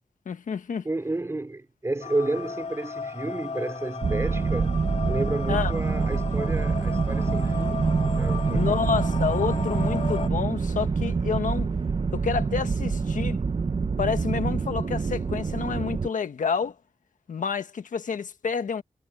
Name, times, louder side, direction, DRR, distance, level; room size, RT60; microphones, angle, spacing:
voice 1, 0.2-0.9 5.5-5.7 8.5-11.7 12.1-13.4 14.0-16.8 17.3-18.8, left 6 dB, 85° left, 1.4 m, -29 dB
voice 2, 0.8-7.8 8.1-8.8, right 2 dB, 20° right, 3.5 m, -31 dB
sound 1, 2.0-10.3, left 5 dB, 60° left, 2.8 m, -36 dB
sound 2, 4.0-16.1, right 4 dB, 40° right, 0.8 m, -26 dB
wide cardioid pair, 135°, 13 cm